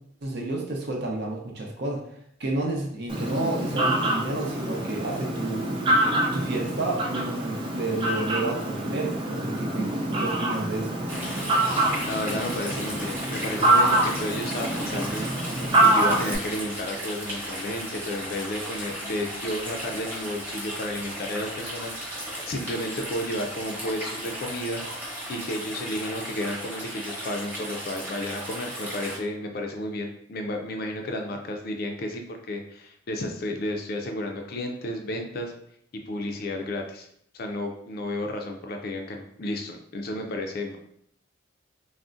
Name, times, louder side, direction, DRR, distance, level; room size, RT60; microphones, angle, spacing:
voice 1, 0.2-2.0 2.4-5.7 6.3-9.9 10.2-11.0, right 2 dB, 60° right, 0 dB, 0.6 m, -30 dB
Fowl, 3.1-16.3, right 1 dB, 25° right, 0.4 m, -25 dB
sound 1, 11.1-29.2, equal, 10° right, 1.0 m, -35 dB
voice 2, 12.1-24.8 25.3-35.5 35.9-37.1 37.3-40.8, left 1 dB, 55° left, 3 dB, 0.4 m, -32 dB
3.6 x 2.1 x 2.5 m, 0.69 s
head